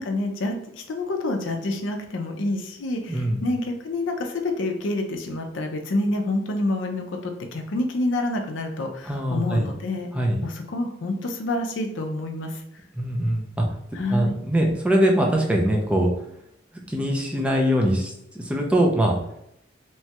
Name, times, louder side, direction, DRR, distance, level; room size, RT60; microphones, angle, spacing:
voice 1, 0.0-10.1 10.4-12.6 13.9-14.4, left 2 dB, 75° left, 4 dB, 0.5 m, -28 dB
voice 2, 3.1-3.4 9.1-9.7 10.1-10.4 13.0-13.6 14.1-16.1 16.9-19.2, equal, 5° right, 0 dB, 0.4 m, -22 dB
3.0 x 2.3 x 2.8 m, 0.76 s
head